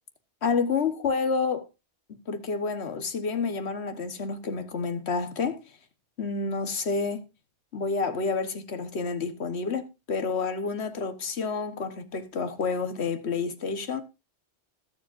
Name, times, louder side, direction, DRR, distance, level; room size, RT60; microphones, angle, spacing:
voice 1, 0.4-1.7 2.3-5.6 6.2-7.2 7.7-14.0, left 4 dB, 65° left, 1.5 m, -29 dB
20.5 x 7.3 x 2.5 m
omnidirectional pair, 1.2 m